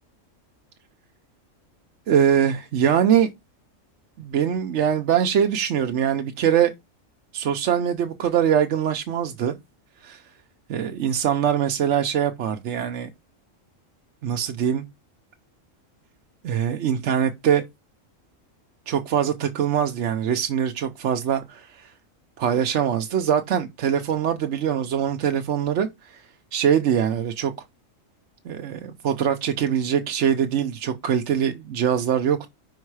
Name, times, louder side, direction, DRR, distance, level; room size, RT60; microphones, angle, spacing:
voice 1, 2.1-3.3 4.2-6.7 7.3-9.6 10.0-10.2 10.7-13.1 14.2-14.8 16.4-17.6 18.9-21.9 22.4-26.2 26.5-27.5 28.5-32.5, right 9 dB, 65° right, 1.0 m, -23 dB
5.4 x 4.6 x 4.7 m
omnidirectional pair, 1.3 m